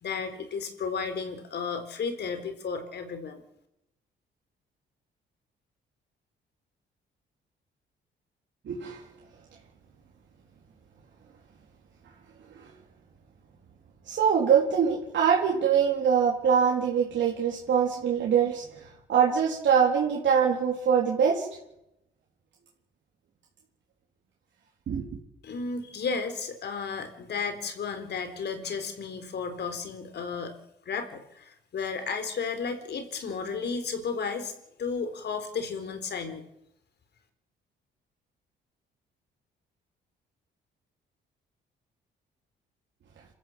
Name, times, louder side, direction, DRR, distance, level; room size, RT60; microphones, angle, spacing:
voice 1, 0.0-3.4 25.4-30.6 30.9-36.4, left 5 dB, 60° left, 8 dB, 4.1 m, -33 dB
voice 2, 8.7-9.0 14.1-18.6 19.1-21.5 24.9-25.1, right 7 dB, 65° right, -2 dB, 4.0 m, -23 dB
27.5 x 14.5 x 8.0 m, 0.84 s
cardioid pair, 90°, 20 cm